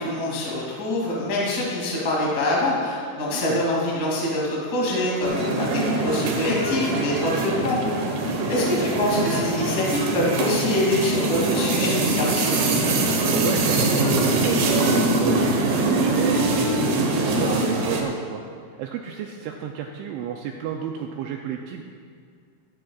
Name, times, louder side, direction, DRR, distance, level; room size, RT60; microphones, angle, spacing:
voice 1, 0.0-7.8 8.5-12.5, left 1 dB, 30° left, -5 dB, 1.7 m, -25 dB
voice 2, 3.3-3.6 8.3-8.6 13.2-18.4 18.8-21.8, right 8 dB, 85° right, 2 dB, 2.7 m, -31 dB
sound 1, 5.2-18.0, right 2 dB, 70° right, 2.2 m, -23 dB
15.5 x 14.5 x 2.4 m, 2.2 s
omnidirectional pair, 5.9 m